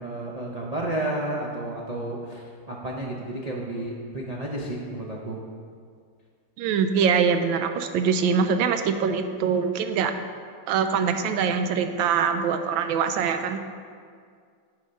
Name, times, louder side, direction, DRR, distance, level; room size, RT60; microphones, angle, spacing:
voice 1, 0.0-5.4, right 1 dB, 50° right, -4 dB, 0.4 m, -31 dB
voice 2, 6.6-10.1 10.7-13.6, right 6 dB, 90° right, 8 dB, 1.4 m, -23 dB
9.4 x 5.0 x 5.4 m, 2.1 s
omnidirectional pair, 2.1 m